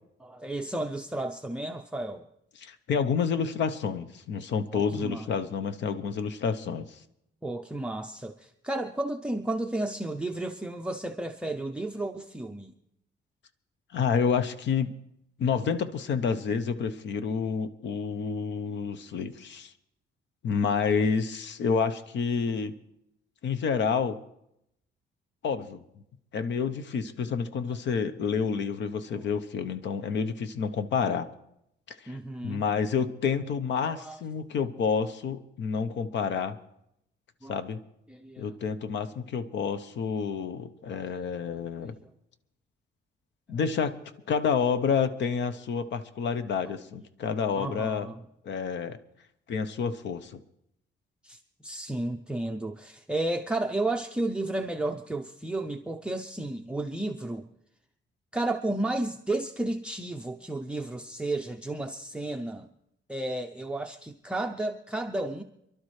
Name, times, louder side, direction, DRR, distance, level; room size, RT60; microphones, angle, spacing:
voice 1, 0.2-2.3 4.7-5.3 7.4-12.7 27.9-28.0 29.2-29.3 32.1-32.6 33.8-34.2 37.4-37.6 38.1-38.5 40.9-41.3 41.8-42.1 47.5-48.2 51.2-57.5 58.3-62.7 63.1-65.4, right 2 dB, 5° right, 4 dB, 0.5 m, -33 dB
voice 2, 2.6-7.0 13.9-14.9 15.4-19.7 20.4-22.7 23.4-24.2 25.4-25.8 26.3-31.3 31.9-32.2 32.4-36.6 37.5-37.8 38.4-41.9 43.5-44.0 44.3-48.1 48.4-49.0 49.5-50.4, left 6 dB, 70° left, 11 dB, 0.9 m, -29 dB
27.5 x 12.0 x 3.2 m, 0.79 s
cardioid pair, 160°, 19 cm